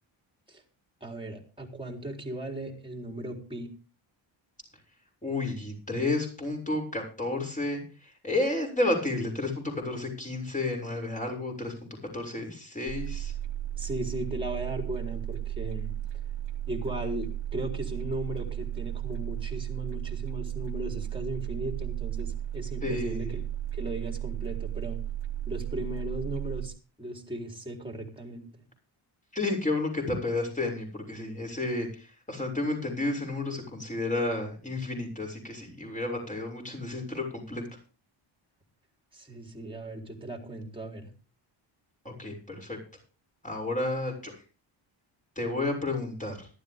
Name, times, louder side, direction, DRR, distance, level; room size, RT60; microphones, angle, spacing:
voice 1, 1.0-3.7 13.8-15.9 16.7-23.4 23.7-25.0 25.5-28.5 39.1-41.1, right 1 dB, 10° right, 2 dB, 4.0 m, -37 dB
voice 2, 5.2-13.3 22.8-23.4 29.3-37.6 42.1-42.8 43.4-44.3 45.4-46.5, left 2 dB, 15° left, 2 dB, 6.9 m, -31 dB
sound 1, 12.9-26.7, right 12 dB, 60° right, 2.3 m, -34 dB
15.0 x 12.5 x 3.7 m, 0.36 s
cardioid pair, 90°, 48 cm